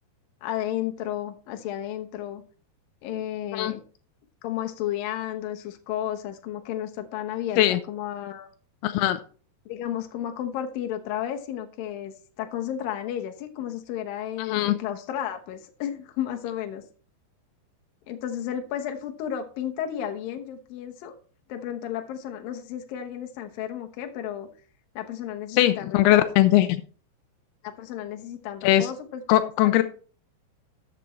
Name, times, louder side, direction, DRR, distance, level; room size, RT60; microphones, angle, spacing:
voice 1, 0.4-2.4 3.0-3.8 4.4-8.5 9.7-16.8 18.1-21.1 21.5-24.5 25.0-26.3 27.6-29.2 29.6-29.8, left 10 dB, 70° left, 5 dB, 2.3 m, -33 dB
voice 2, 8.8-9.2 14.4-14.8 25.5-26.8 28.6-28.9 29.3-29.8, left 14 dB, 90° left, 10 dB, 2.2 m, -20 dB
13.0 x 8.3 x 3.2 m, 0.40 s
omnidirectional pair, 5.3 m